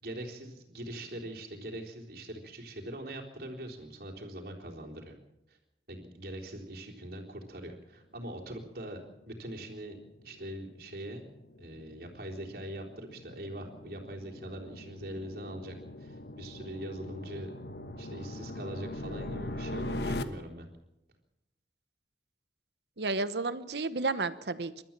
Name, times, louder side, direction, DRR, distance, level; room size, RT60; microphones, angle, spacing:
voice 1, 0.0-5.1 5.5-5.6 5.9-11.2 11.6-17.5 18.0-20.7, right 1 dB, 55° right, 0 dB, 3.8 m, -42 dB
sound 1, 9.2-20.2, left 1 dB, 70° left, 1.3 m, -41 dB
voice 2, 23.0-24.8, right 3 dB, 70° right, 13 dB, 1.1 m, -32 dB
29.0 x 13.0 x 7.5 m, 0.92 s
head